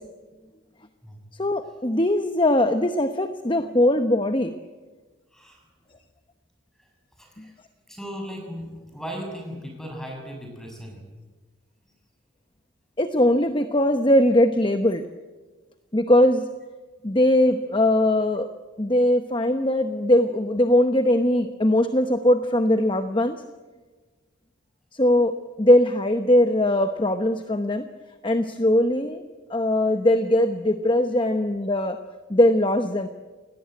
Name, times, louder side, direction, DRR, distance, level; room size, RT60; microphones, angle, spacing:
voice 1, 1.4-4.6 13.0-15.1 15.9-16.5 17.0-18.5 18.8-23.4 24.9-27.8 28.2-29.2 29.5-32.0 32.3-33.1, left 1 dB, 25° left, 8 dB, 0.9 m, -20 dB
voice 2, 5.3-5.7 6.8-6.9 7.2-7.6 7.9-11.0 11.8-11.9, equal, ahead, 1 dB, 6.5 m, -37 dB
29.0 x 18.0 x 9.3 m, 1.3 s
head